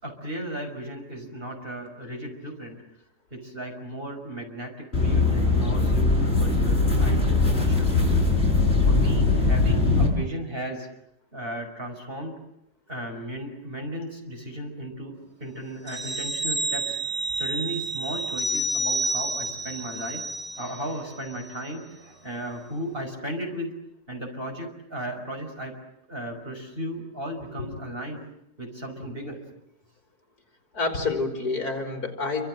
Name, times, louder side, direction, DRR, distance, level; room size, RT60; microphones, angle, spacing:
voice 1, 0.0-2.8 3.3-7.9 8.8-10.9 11.3-12.3 12.9-15.1 15.4-17.0 17.3-20.2 20.6-23.7 24.1-25.7 26.1-28.2 28.6-29.4, right 1 dB, 30° right, 3 dB, 5.7 m, -35 dB
sound 1, 4.9-10.1, left 3 dB, 35° left, 7.6 m, -21 dB
sound 2, 15.9-21.0 21.3-21.5, right 2 dB, 65° right, 3.7 m, -29 dB
voice 2, 30.7-32.5, left 3 dB, 55° left, 4 dB, 4.3 m, -28 dB
28.0 x 26.0 x 7.8 m, 0.81 s
omnidirectional pair, 1.9 m